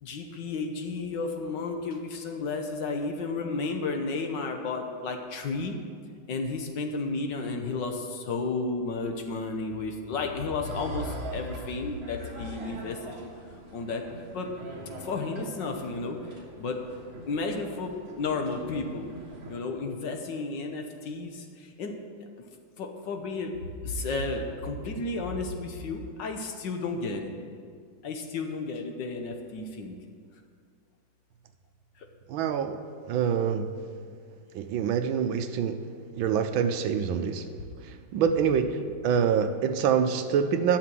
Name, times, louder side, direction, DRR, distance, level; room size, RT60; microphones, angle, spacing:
voice 1, 0.0-5.7 6.3-13.1 13.7-14.0 14.3-14.5 15.0-16.2 16.6-16.8 17.3-19.1 19.5-21.4 21.8-21.9 22.8-23.5 23.8-27.3 28.0-30.0 38.8-38.9, left 3 dB, 65° left, 3 dB, 1.6 m, -32 dB
sound 1, 10.6-19.6, right 2 dB, 45° right, 2.0 m, -44 dB
voice 2, 32.3-32.8 33.1-33.7 34.5-35.8 36.2-37.4 37.8-38.8 39.0-40.8, right 7 dB, 75° right, 9 dB, 1.4 m, -25 dB
12.0 x 6.8 x 7.7 m, 2.1 s
omnidirectional pair, 2.3 m